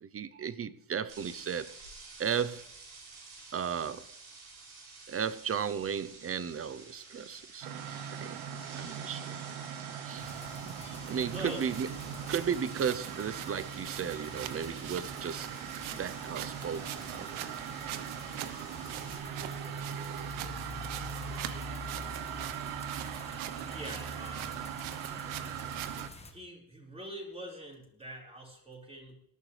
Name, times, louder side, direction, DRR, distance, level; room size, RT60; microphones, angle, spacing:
voice 1, 0.0-1.7 2.2-2.7 3.5-4.1 5.1-7.8 8.1-8.4 8.7-9.4 10.0-10.3 11.1-11.9 12.3-15.5 15.9-17.3, right 7 dB, 30° right, 16 dB, 0.7 m, -35 dB
sound 1, 1.1-19.2, right 4 dB, 55° right, 6.8 m, -51 dB
sound 2, 7.6-26.1, right 9 dB, 90° right, 1.1 m, -39 dB
sound 3, 10.2-26.3, left 3 dB, 15° left, 1.5 m, -48 dB
voice 2, 11.3-11.6 12.3-12.4 23.6-24.8 26.3-29.2, right 1 dB, 15° right, -2 dB, 4.8 m, -44 dB
19.0 x 12.0 x 3.3 m, 0.73 s
cardioid pair, 120°, 46 cm